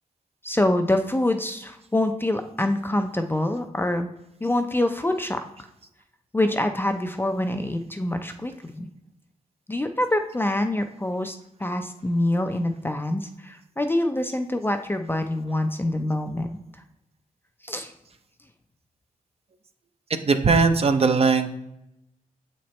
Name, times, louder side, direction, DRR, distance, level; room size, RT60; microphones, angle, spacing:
voice 1, 0.4-4.1 4.4-5.4 6.3-8.9 9.7-16.5 17.6-17.9, left 1 dB, 15° left, 6 dB, 0.4 m, -25 dB
voice 2, 20.3-21.6, right 4 dB, 40° right, 7 dB, 0.5 m, -19 dB
7.6 x 4.2 x 3.1 m, 0.85 s
wide cardioid pair, 120°, 15 cm